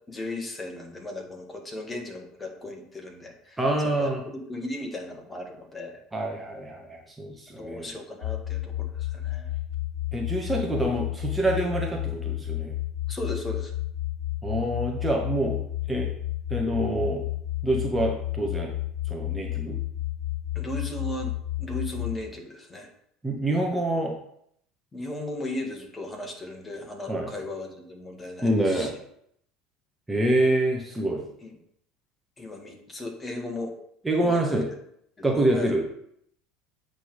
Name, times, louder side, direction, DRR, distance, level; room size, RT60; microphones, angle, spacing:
voice 1, 0.1-3.6 3.8-6.0 7.6-9.5 13.1-13.7 20.6-22.9 24.9-28.9 31.4-31.6 32.4-33.8 34.2-34.6 35.2-35.3 35.5-35.7, left 1 dB, 20° left, 1 dB, 2.0 m, -36 dB
voice 2, 3.6-4.2 6.1-7.9 10.1-12.7 14.4-16.1 16.5-17.2 17.6-18.7 19.1-19.8 23.2-24.1 27.1-27.3 28.4-28.9 30.1-31.2 34.0-34.6 35.2-35.8, right 1 dB, 10° right, 0 dB, 1.4 m, -26 dB
sound 1, 8.2-22.2, left 14 dB, 75° left, 0.6 m, -31 dB
8.2 x 3.9 x 5.3 m, 0.70 s
figure-of-eight pair, 70°, 0 cm